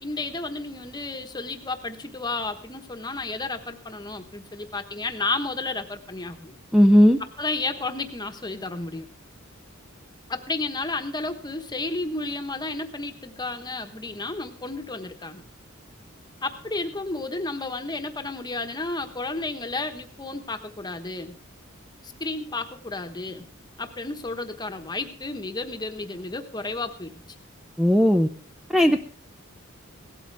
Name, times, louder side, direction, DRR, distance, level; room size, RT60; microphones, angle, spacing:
voice 1, 0.0-6.6 7.4-9.1 10.3-15.4 16.4-21.4 22.0-23.4 23.8-27.1, left 3 dB, 20° left, 7 dB, 1.2 m, -32 dB
voice 2, 6.7-7.2 27.8-28.3 28.7-29.0, equal, ahead, 6 dB, 0.5 m, -16 dB
17.0 x 12.5 x 3.4 m, 0.43 s
head